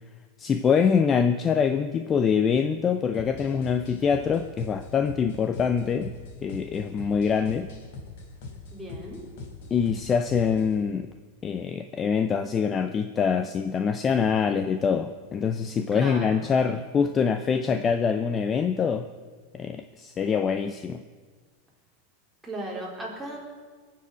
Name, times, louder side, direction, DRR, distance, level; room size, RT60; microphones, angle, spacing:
voice 1, 0.4-6.1 6.4-7.7 9.7-11.1 11.4-19.1 19.5-21.0, left 6 dB, 20° left, 9 dB, 0.6 m, -24 dB
sound 1, 3.1-10.8, left 3 dB, 65° left, 3.9 m, -42 dB
voice 2, 8.7-9.2 15.9-16.4 22.4-23.4, right 1 dB, 5° right, -4 dB, 4.0 m, -36 dB
22.0 x 7.6 x 8.2 m, 1.5 s
supercardioid pair, 150°, 0 cm